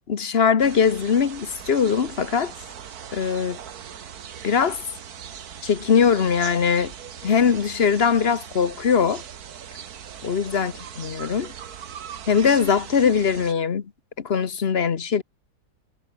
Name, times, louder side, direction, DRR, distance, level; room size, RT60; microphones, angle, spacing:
voice 1, 0.0-2.5 3.1-3.6 4.4-4.8 5.6-6.9 7.2-9.2 10.2-11.5 12.3-13.9 14.2-15.2, left 6 dB, 40° left, 1.0 m, -21 dB
sound 1, 0.6-13.5, right 8 dB, 55° right, 1.7 m, -40 dB
omnidirectional pair, 2.0 m